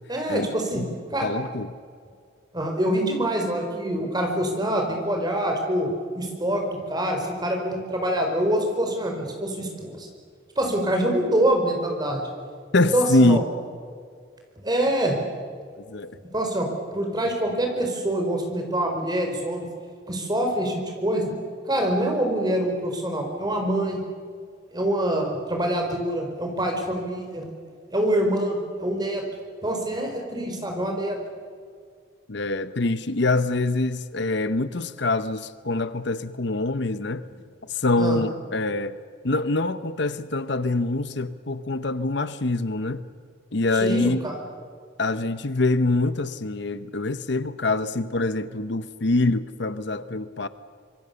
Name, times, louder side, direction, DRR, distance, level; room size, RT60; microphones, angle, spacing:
voice 1, 0.1-0.8 1.1-1.3 2.5-10.1 10.6-12.2 12.8-13.4 14.6-15.2 16.3-19.7 20.1-21.3 21.7-24.0 24.7-27.5 27.9-29.2 29.6-31.2 38.0-38.2 43.7-44.3, right 1 dB, 20° right, 4.8 m, -25 dB
voice 2, 1.2-1.8 12.7-13.4 15.8-16.2 32.3-37.3 37.6-39.0 39.2-43.1 43.5-44.2 45.0-50.5, left 2 dB, 65° left, 0.9 m, -24 dB
26.5 x 22.5 x 6.9 m
head